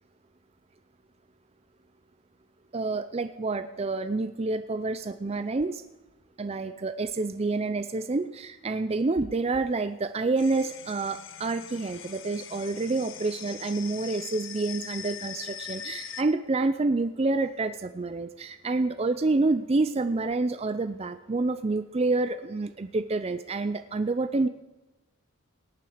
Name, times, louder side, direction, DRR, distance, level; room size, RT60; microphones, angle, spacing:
voice 1, 2.7-5.8 6.4-24.5, right 3 dB, 30° right, 10 dB, 0.5 m, -28 dB
sound 1, 10.4-16.2, left 9 dB, 65° left, 1.0 m, -42 dB
18.0 x 9.9 x 5.0 m, 1.1 s
head